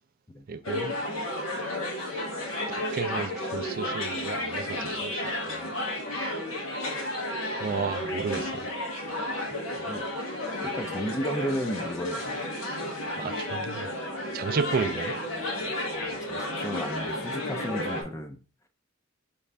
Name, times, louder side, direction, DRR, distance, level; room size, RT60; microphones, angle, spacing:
voice 1, 0.5-0.9 2.7-5.7 7.6-8.5 13.2-13.9 14.3-15.1, right 5 dB, 45° right, 0.3 m, -32 dB
sound 1, 0.6-18.0, left 1 dB, 85° left, 1.0 m, -32 dB
voice 2, 9.7-10.1 10.6-12.5 15.9-18.4, equal, 15° left, 0.4 m, -34 dB
5.2 x 2.4 x 3.2 m
head